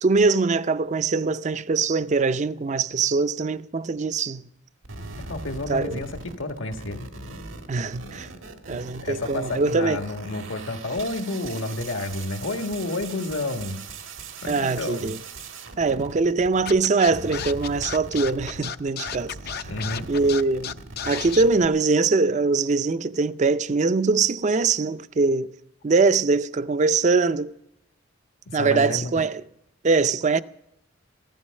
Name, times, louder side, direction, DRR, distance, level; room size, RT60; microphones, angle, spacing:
voice 1, 0.0-4.5 5.7-6.0 7.7-8.3 8.7-10.0 14.5-15.2 15.8-19.7 20.1-20.8 21.1-25.5 25.8-27.5 28.5-29.4 29.8-30.4, right 4 dB, 40° right, 0.5 m, -22 dB
sound 1, 4.8-16.8 17.1-21.7, right 3 dB, 85° right, 1.7 m, -40 dB
voice 2, 5.2-7.1 9.0-13.8 14.4-15.1 19.7-20.1 28.4-29.2, left 2 dB, 80° left, 1.5 m, -30 dB
Scratching (performance technique), 16.6-21.4, left 9 dB, 55° left, 0.5 m, -33 dB
15.0 x 13.0 x 6.5 m
head